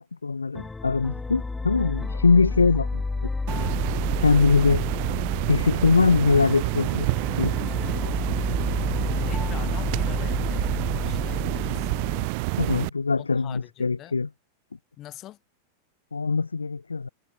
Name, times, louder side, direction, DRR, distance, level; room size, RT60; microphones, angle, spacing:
voice 1, 0.0-3.0 4.2-4.9 5.5-7.1 7.4-7.5 12.6-14.3 16.1-17.1, left 4 dB, 75° left, 2.4 m, -22 dB
sound 1, 0.5-12.3, left 3 dB, 10° left, 1.2 m, -31 dB
sound 2, 3.5-12.9, right 32 dB, 45° right, 4.0 m, -28 dB
voice 2, 9.2-11.9 13.2-14.2 15.0-15.4, left 14 dB, 35° left, 8.0 m, -44 dB
figure-of-eight pair, 90°, 0 cm